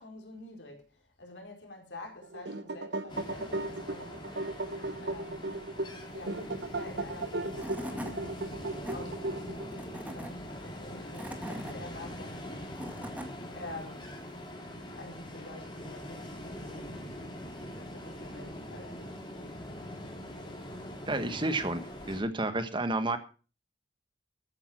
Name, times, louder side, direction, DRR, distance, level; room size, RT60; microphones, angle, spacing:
voice 1, 0.0-4.2 5.0-5.6 6.1-8.2 8.9-9.5 10.1-12.4 13.5-14.1 15.0-17.2 17.5-19.2, left 2 dB, 80° left, 4.4 m, -47 dB
sound 1, 2.2-9.8, right 2 dB, 70° right, 1.0 m, -36 dB
Ocean, 3.1-22.2, left 1 dB, 25° left, 3.4 m, -43 dB
Tools / Wood, 7.2-7.3 7.6-8.1 8.6-9.0 9.7-10.3 10.9-11.7 12.5-13.3, equal, 10° right, 1.9 m, -40 dB
voice 2, 21.1-23.2, right 2 dB, 25° right, 1.3 m, -31 dB
13.5 x 9.0 x 6.1 m
head